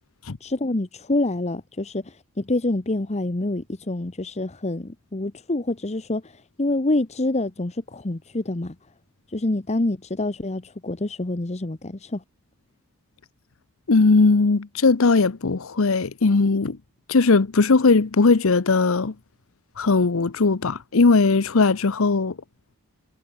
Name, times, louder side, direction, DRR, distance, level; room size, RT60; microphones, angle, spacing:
voice 1, 0.4-8.8 9.3-12.2, left 2 dB, 30° left, 1.0 m, -27 dB
voice 2, 13.9-16.8 17.1-19.1 19.8-22.4, left 3 dB, 65° left, 0.8 m, -19 dB
head